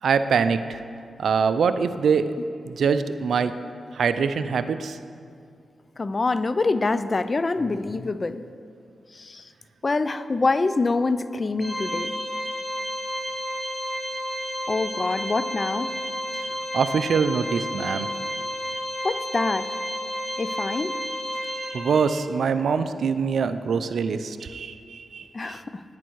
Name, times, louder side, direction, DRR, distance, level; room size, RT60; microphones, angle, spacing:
voice 1, 0.0-0.8 1.2-2.3 2.6-3.5 3.9-5.0 16.7-18.1 21.5-25.6, right 6 dB, 75° right, 11 dB, 0.4 m, -24 dB
voice 2, 6.0-8.4 9.1-9.5 9.8-12.1 14.7-15.9 19.0-19.7 20.4-21.0 25.3-25.8, left 3 dB, 40° left, 13 dB, 0.4 m, -25 dB
Organ, 11.6-22.3, equal, ahead, 1.4 m, -31 dB
10.5 x 9.3 x 4.6 m, 2.3 s
cardioid pair, 60°, 0 cm